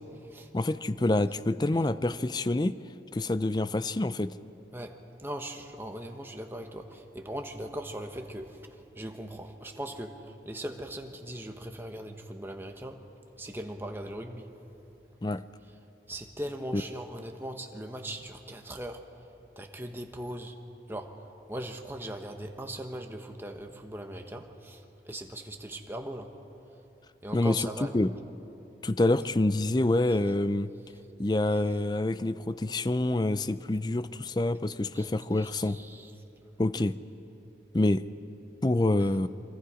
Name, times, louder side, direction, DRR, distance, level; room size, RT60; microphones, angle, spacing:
voice 1, 0.5-2.7 3.1-4.3 15.2-15.4 16.7-16.8 27.3-28.1 28.8-30.7 31.2-35.8 36.6-37.0 37.7-38.0 38.6-39.3, left 2 dB, 25° left, 14 dB, 0.5 m, -27 dB
voice 2, 4.7-8.6 9.0-13.0 13.4-14.5 16.1-19.1 19.6-20.6 20.9-21.2 21.5-26.3 27.2-27.9 34.9-35.1 35.4-36.1, right 1 dB, 15° right, 4 dB, 1.2 m, -39 dB
26.0 x 24.5 x 5.0 m, 2.9 s
head